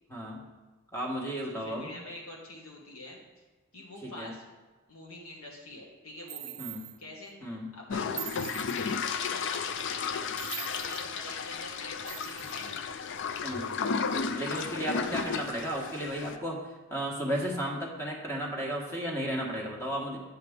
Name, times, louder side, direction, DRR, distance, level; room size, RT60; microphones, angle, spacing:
voice 1, 0.1-0.4 0.9-1.9 4.0-4.3 6.6-6.8 7.4-7.7 13.4-13.7 14.3-20.2, equal, 10° left, -1 dB, 1.3 m, -34 dB
voice 2, 1.5-3.4 3.7-4.4 4.9-6.6 7.0-7.3 7.7-8.0 8.6-10.2 10.5-12.8, left 1 dB, 80° left, -2 dB, 1.9 m, -46 dB
sound 1, 6.3-7.0 8.2-9.0 10.4-11.1 12.1-12.7, right 15 dB, 60° right, 0.6 m, -42 dB
sound 2, 7.9-16.4, left 5 dB, 55° left, 0.4 m, -33 dB
8.1 x 7.6 x 3.6 m, 1.3 s
head